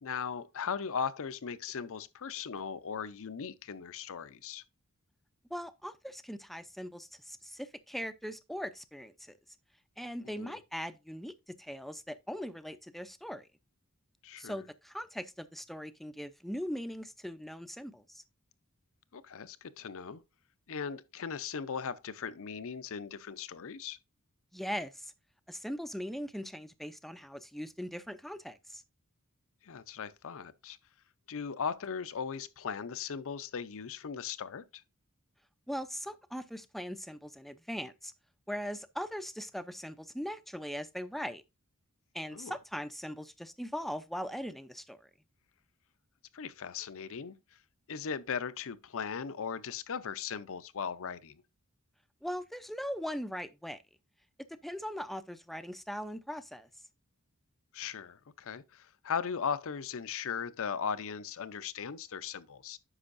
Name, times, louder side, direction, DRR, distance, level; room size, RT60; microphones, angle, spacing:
voice 1, 0.0-4.6 10.2-10.6 14.2-14.6 19.1-20.2 20.7-24.0 29.6-30.8 31.3-34.8 42.3-42.6 46.3-47.6 47.9-51.4 57.7-62.8, left 6 dB, 65° left, 0.6 m, -38 dB
voice 2, 5.5-9.3 10.0-11.3 11.6-13.5 14.4-18.2 24.5-25.1 25.5-28.8 35.7-38.1 38.5-41.4 42.1-45.0 52.2-53.8 54.6-56.7, equal, ahead, 0.5 m, -40 dB
9.8 x 6.2 x 2.5 m
head